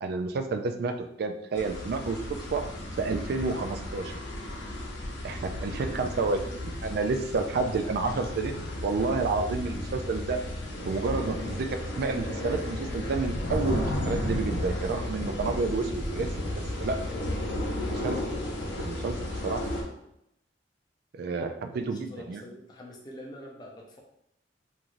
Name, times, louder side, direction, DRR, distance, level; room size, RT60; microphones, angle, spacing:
voice 1, 0.0-2.7 3.0-4.2 5.2-10.5 10.9-16.3 16.8-17.0 17.9-18.2 18.8-19.7 21.1-22.4, right 4 dB, 60° right, 7 dB, 0.3 m, -30 dB
sound 1, 1.5-19.8, left 1 dB, 85° left, 0.7 m, -33 dB
voice 2, 5.8-6.4 21.6-24.0, left 1 dB, 25° left, -1 dB, 0.5 m, -46 dB
3.0 x 2.5 x 2.5 m, 0.79 s
head